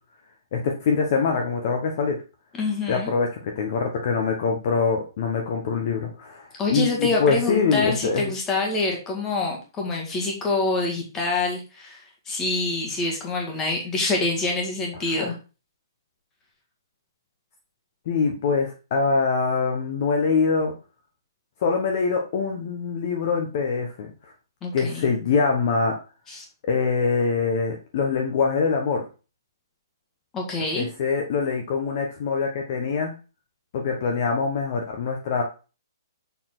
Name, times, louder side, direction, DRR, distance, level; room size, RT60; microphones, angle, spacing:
voice 1, 0.5-2.2 2.9-8.3 15.1-15.3 18.1-20.7 21.6-24.3 24.7-25.9 26.6-29.0 30.7-33.1 33.7-35.4, left 5 dB, 35° left, 2 dB, 1.0 m, -24 dB
voice 2, 2.5-3.1 6.6-15.4 24.6-25.1 26.3-26.5 30.3-30.9, left 3 dB, 10° left, 0 dB, 1.7 m, -26 dB
6.8 x 4.2 x 5.9 m, 0.34 s
hypercardioid pair, 175°, 2 cm